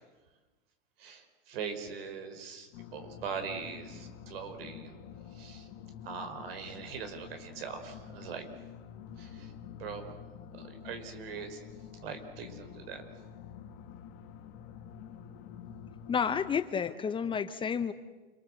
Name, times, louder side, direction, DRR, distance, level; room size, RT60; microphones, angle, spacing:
voice 1, 1.0-4.9 5.4-5.7 6.0-8.5 9.2-9.5 9.8-10.1 10.5-11.6 12.0-13.0, right 6 dB, 70° right, 7 dB, 5.2 m, -41 dB
sound 1, 2.7-16.6, left 8 dB, 50° left, 2.8 m, -48 dB
voice 2, 16.1-17.9, left 7 dB, 15° left, 10 dB, 1.0 m, -30 dB
29.0 x 24.5 x 7.9 m, 1.2 s
supercardioid pair, 145°, 30 cm